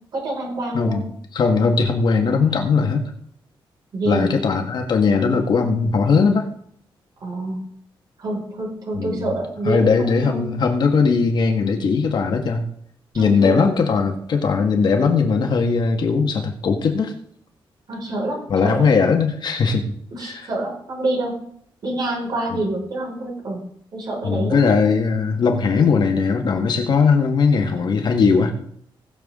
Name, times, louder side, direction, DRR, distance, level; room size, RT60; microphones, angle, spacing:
voice 1, 0.1-1.1 3.9-4.3 7.2-7.6 8.2-10.5 13.1-13.5 17.9-18.9 20.1-21.3 21.8-23.6 23.9-24.6, right 2 dB, 50° right, -3 dB, 5.5 m, -27 dB
voice 2, 1.3-3.1 4.0-6.5 8.9-9.3 9.6-12.6 13.1-17.1 18.5-19.9 20.2-20.5 22.5-22.6 24.2-28.5, left 5 dB, 55° left, 4 dB, 1.7 m, -19 dB
19.5 x 7.2 x 3.8 m, 0.63 s
wide cardioid pair, 180°, 9 cm